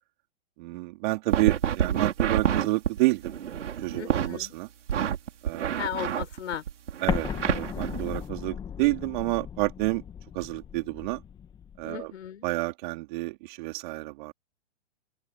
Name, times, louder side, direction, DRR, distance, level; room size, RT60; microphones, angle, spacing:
voice 1, 0.6-3.3 3.8-4.7 5.4-5.8 7.0-7.3 7.5-10.0 10.3-11.2 11.8-12.0 12.4-14.3, right 21 dB, 40° right, 4.1 m, -29 dB
sound 1, 1.3-4.3 4.9-8.2, right 9 dB, 80° right, 5.6 m, -28 dB
voice 2, 3.9-4.6 5.8-6.6 11.8-12.5, left 9 dB, 75° left, 5.9 m, -36 dB
Explosion, 7.1-11.8, left 8 dB, 10° left, 1.4 m, -35 dB
open air
hypercardioid pair, 155°, 36 cm